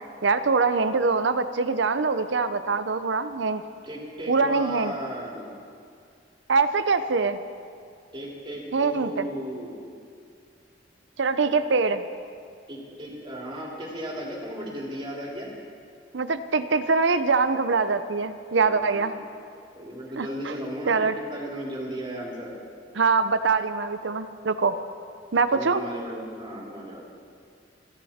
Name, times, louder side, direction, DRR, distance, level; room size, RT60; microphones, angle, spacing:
voice 1, 0.2-3.6 4.3-4.9 6.5-7.4 8.7-9.3 11.2-12.0 16.1-19.1 20.2-20.5 20.9-21.1 23.0-24.7 25.3-25.8, right 4 dB, 80° right, 11 dB, 0.7 m, -23 dB
voice 2, 3.8-5.5 8.1-9.8 12.7-15.5 18.6-19.3 19.8-22.5 25.5-27.0, equal, 30° right, -3 dB, 3.1 m, -35 dB
29.0 x 9.9 x 4.3 m, 2.3 s
head